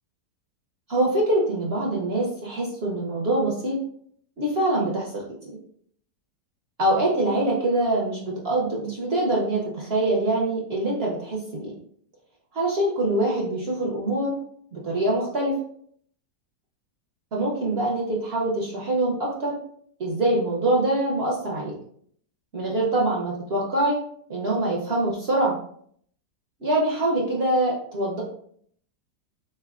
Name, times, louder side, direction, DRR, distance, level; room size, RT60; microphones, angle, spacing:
voice 1, 0.9-3.8 4.4-5.5 6.8-11.7 12.5-14.4 14.7-15.5 17.3-19.5 20.0-21.7 22.5-24.0 24.3-25.6 26.6-28.2, right 1 dB, 55° right, -3 dB, 0.7 m, -24 dB
3.8 x 3.4 x 2.4 m, 0.62 s
omnidirectional pair, 1.8 m